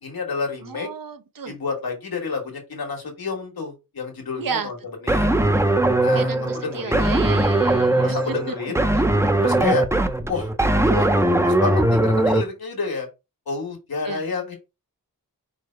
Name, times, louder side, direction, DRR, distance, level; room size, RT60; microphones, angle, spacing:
voice 1, 0.0-0.9 1.4-5.3 6.0-7.1 8.0-8.8 9.4-9.8 10.3-10.5 10.8-13.1 13.5-14.6, left 4 dB, 85° left, 1.5 m, -30 dB
voice 2, 0.7-1.5 4.4-4.7 6.1-8.2 14.1-14.2, right 6 dB, 70° right, 0.7 m, -32 dB
sound 1, 5.1-12.4, right 1 dB, 10° right, 0.5 m, -20 dB
4.9 x 2.1 x 4.4 m
wide cardioid pair, 100°, 35 cm